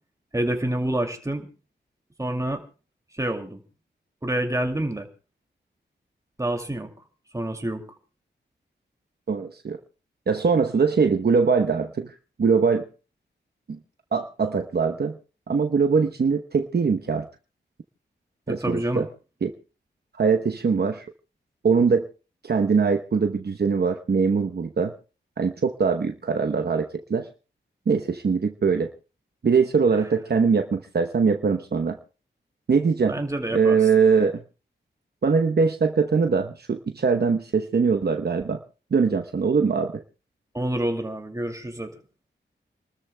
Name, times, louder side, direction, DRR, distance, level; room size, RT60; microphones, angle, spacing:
voice 1, 0.3-1.5 2.2-2.6 3.1-3.6 4.2-5.1 6.4-6.9 7.3-7.8 18.5-19.0 33.1-33.8 40.5-41.9, right 1 dB, 15° right, 4 dB, 2.5 m, -27 dB
voice 2, 9.3-9.8 10.3-12.9 13.7-13.8 14.1-15.2 15.5-17.3 18.5-19.1 19.4-19.5 20.2-21.1 21.6-22.1 22.4-24.9 25.4-27.3 27.9-28.9 29.4-32.0 32.7-33.1 33.5-34.4 35.2-38.6 38.9-39.9, right 5 dB, 55° right, 6 dB, 1.0 m, -22 dB
30.0 x 13.5 x 2.3 m, 0.34 s
cardioid pair, 65°, 20 cm